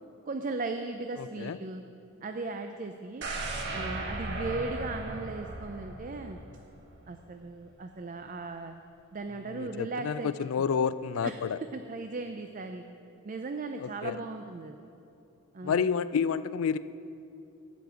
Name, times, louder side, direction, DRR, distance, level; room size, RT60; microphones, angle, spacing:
voice 1, 0.3-1.8 2.2-3.3 3.7-6.4 7.1-8.8 9.1-10.3 11.2-12.8 13.2-14.9 15.5-16.0, right 3 dB, 35° right, 6 dB, 0.4 m, -37 dB
voice 2, 1.2-1.6 9.5-11.6 13.8-14.2 15.6-16.8, left 6 dB, 70° left, 16 dB, 0.3 m, -29 dB
sound 1, 3.2-7.2 7.5-7.6, right 2 dB, 55° right, 1.3 m, -37 dB
12.5 x 5.2 x 8.0 m, 2.8 s
head